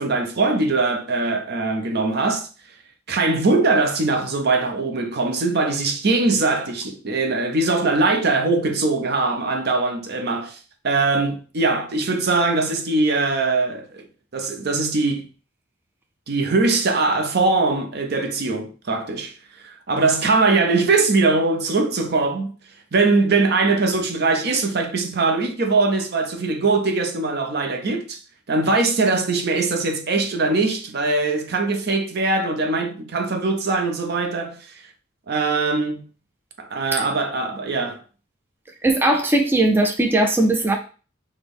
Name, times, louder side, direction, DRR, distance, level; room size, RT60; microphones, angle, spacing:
voice 1, 0.0-2.5 3.1-10.6 10.8-14.0 14.3-15.3 16.3-22.5 22.9-28.2 28.5-34.7 35.3-36.0 36.6-38.0, right 3 dB, 55° right, 0.7 m, -21 dB
voice 2, 38.8-40.8, right 1 dB, 10° right, 0.4 m, -19 dB
6.0 x 2.2 x 3.5 m
head